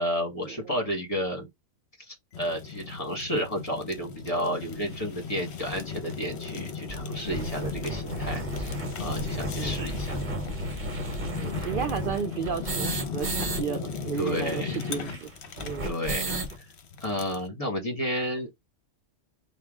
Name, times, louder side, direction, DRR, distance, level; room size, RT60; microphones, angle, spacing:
voice 1, 0.0-1.5 2.1-8.7 9.0-10.1 11.4-11.7 14.2-14.8 15.8-16.3 16.6-16.7 17.0-18.6, equal, 25° left, 1.5 m, -31 dB
Fire, 2.3-17.5, left 5 dB, 55° left, 1.0 m, -37 dB
sound 1, 4.9-5.0 5.7-5.8 6.1-6.2 6.5-6.6 6.9-13.6 13.9-14.0 14.2-16.6, right 1 dB, 35° right, 1.2 m, -34 dB
sound 2, 6.9-7.0 7.3-7.4 7.7-7.9 8.2-8.3 8.6-8.7 9.0-9.2 9.5-9.6 9.9-10.4 10.7-10.9 11.2-11.3 11.6-11.7 12.0-12.2 12.5-12.6 12.9-13.0 13.3-13.5, right 1 dB, 10° left, 1.7 m, -40 dB
voice 2, 11.3-15.3 15.6-15.9, right 7 dB, 60° right, 0.6 m, -33 dB
5.6 x 2.5 x 3.6 m
omnidirectional pair, 1.4 m